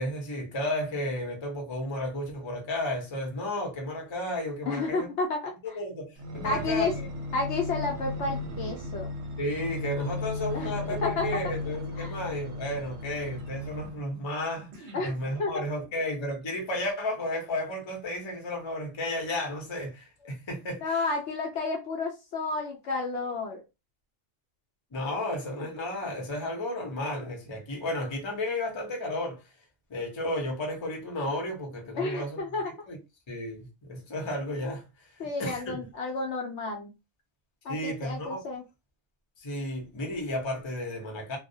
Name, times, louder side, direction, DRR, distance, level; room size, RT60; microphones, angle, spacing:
voice 1, 0.0-5.1 5.7-7.1 9.4-21.0 24.9-29.4 29.9-32.4 32.9-33.0 33.3-35.8 37.7-38.4 39.4-41.4, left 1 dB, 30° left, 0.6 m, -33 dB
voice 2, 4.7-5.5 6.4-6.9 7.3-9.1 10.5-10.7 11.0-11.3 12.0-12.2 14.9-15.1 15.4-15.6 20.8-23.6 32.0-32.7 35.2-36.9 37.6-38.6, left 3 dB, 65° left, 0.8 m, -31 dB
sound 1, 6.2-14.1 14.7-16.0 16.6-16.7, left 2 dB, 60° right, 0.8 m, -36 dB
2.3 x 2.1 x 2.6 m
omnidirectional pair, 1.4 m